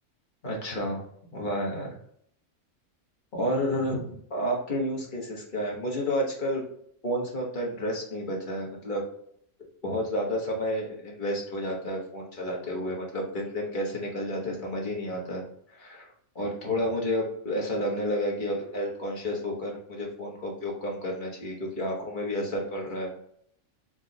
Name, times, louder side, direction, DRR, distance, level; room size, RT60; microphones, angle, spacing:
voice 1, 0.4-2.0 3.3-6.6 7.0-9.0 9.8-15.4 15.7-23.1, equal, 35° left, -2 dB, 1.3 m, -31 dB
4.5 x 3.9 x 2.8 m, 0.68 s
omnidirectional pair, 1.5 m